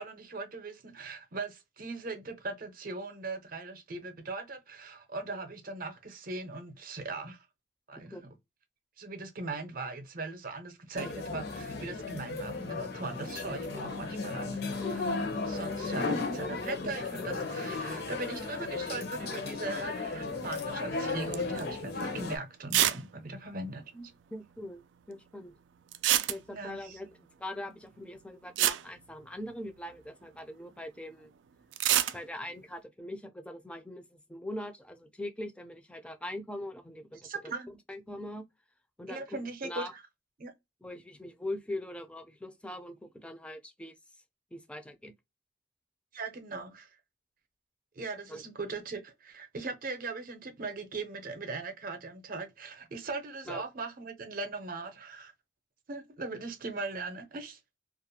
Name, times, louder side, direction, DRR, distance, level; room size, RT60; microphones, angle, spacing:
voice 1, 0.0-7.4 7.9-8.2 9.0-24.1 26.5-27.0 37.2-37.7 39.1-40.0 40.4-40.5 46.1-46.9 48.0-55.3 55.9-57.6, right 3 dB, 50° right, 0.6 m, -39 dB
sound 1, 11.0-22.4, left 3 dB, 60° left, 0.7 m, -35 dB
voice 2, 14.8-15.2 24.3-24.8 25.1-25.5 26.3-31.3 32.1-37.3 37.7-38.5 39.0-39.9 40.8-43.9 44.5-45.1 48.3-48.4 53.5-53.6, left 1 dB, 5° left, 0.4 m, -42 dB
sound 2, 21.3-21.6 22.0-22.1 22.7-23.0 23.3-23.4 23.6-23.7 25.9-26.8 28.1-28.2 28.6-29.8 31.7-32.2, right 12 dB, 90° right, 0.3 m, -26 dB
2.4 x 2.2 x 2.7 m
head